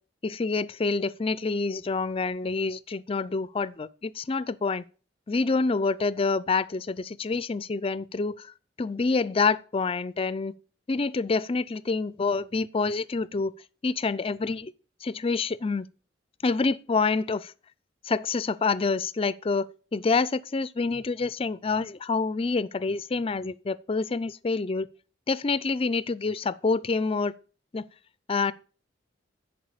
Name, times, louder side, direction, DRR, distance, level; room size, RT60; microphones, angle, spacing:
voice 1, 0.2-4.8 5.3-8.5 8.8-10.5 10.9-13.5 13.8-14.7 15.0-15.9 16.4-17.5 18.0-24.9 25.3-27.3 27.7-27.9 28.3-28.5, left 4 dB, 30° left, 0.4 m, -27 dB
10.5 x 4.7 x 6.6 m
head